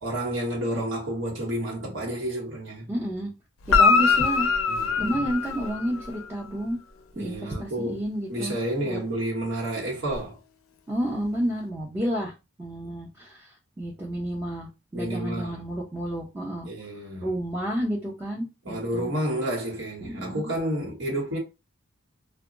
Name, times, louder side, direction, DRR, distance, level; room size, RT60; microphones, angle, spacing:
voice 1, 0.0-2.9 4.7-5.1 7.1-8.0 8.3-10.4 14.9-15.6 16.6-17.3 18.6-21.4, right 1 dB, 65° right, 1.1 m, -30 dB
voice 2, 2.9-3.3 3.7-4.5 5.0-6.8 7.1-8.6 8.8-9.0 10.9-12.3 12.6-16.7 17.2-19.1 20.0-20.5, equal, 15° right, 0.7 m, -30 dB
Guitar, 3.6-6.2 10.1-10.2, left 5 dB, 80° left, 0.4 m, -22 dB
2.2 x 2.1 x 3.7 m
head